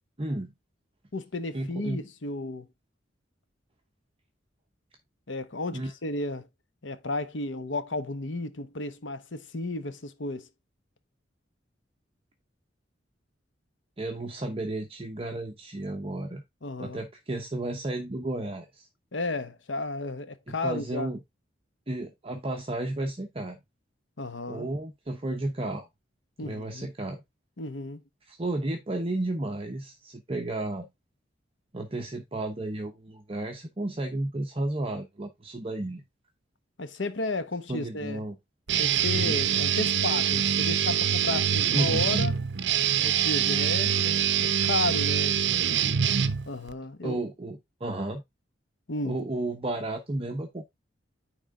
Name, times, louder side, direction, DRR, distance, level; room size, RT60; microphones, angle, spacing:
voice 1, 0.2-0.5 1.5-2.0 5.7-5.9 14.0-16.4 16.8-18.9 20.5-21.2 21.9-23.6 24.5-25.9 26.4-27.2 28.2-30.9 31.7-36.0 37.7-38.4 39.1-39.4 41.7-42.1 47.0-48.2 49.0-50.6, right 2 dB, 30° right, 0.9 m, -33 dB
voice 2, 1.1-2.7 5.3-6.5 6.8-10.5 16.6-17.0 19.1-21.1 24.2-24.7 26.4-26.9 27.6-28.0 36.8-38.2 38.8-42.4 43.0-45.4 46.5-47.2 48.9-49.2, left 2 dB, 85° left, 1.1 m, -33 dB
Guitar, 38.7-46.7, right 8 dB, 70° right, 0.6 m, -25 dB
9.8 x 3.6 x 3.7 m
head